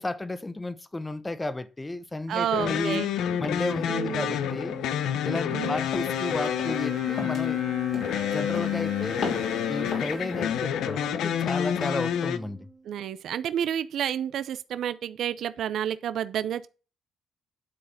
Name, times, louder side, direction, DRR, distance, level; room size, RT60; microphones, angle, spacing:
voice 1, 0.0-3.0 3.4-4.8 5.2-7.6 8.1-9.2 9.7-12.6, left 2 dB, 15° left, 0.8 m, -33 dB
voice 2, 2.3-3.1 3.9-4.3 5.5-5.7 12.8-16.7, right 10 dB, 70° right, 0.5 m, -30 dB
sound 1, 2.5-12.4, left 10 dB, 80° left, 0.7 m, -28 dB
sound 2, 3.5-12.9, right 3 dB, 30° right, 1.1 m, -41 dB
sound 3, 5.9-6.2 6.6-6.9 7.2-7.5 7.9-8.3 8.5-8.9 9.2-9.6 9.9-10.2, left 4 dB, 65° left, 3.0 m, -35 dB
9.7 x 4.0 x 7.2 m
cardioid pair, 90°, 0 cm